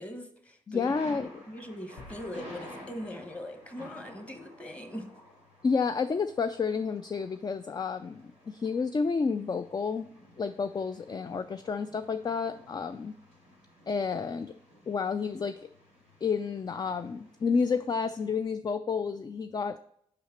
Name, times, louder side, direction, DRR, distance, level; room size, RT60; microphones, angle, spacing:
voice 1, 0.0-5.1, equal, 10° left, 6 dB, 1.2 m, -41 dB
voice 2, 0.7-1.3 5.6-10.1 10.4-13.1 13.9-14.5 14.9-15.6 16.2-19.8, left 5 dB, 25° left, 10 dB, 0.3 m, -30 dB
Thunder, 0.9-18.3, left 1 dB, 90° left, 2.6 m, -53 dB
sound 1, 2.0-4.6, left 3 dB, 70° left, 1.0 m, -55 dB
5.5 x 5.2 x 4.3 m, 0.70 s
hypercardioid pair, 40°, 15 cm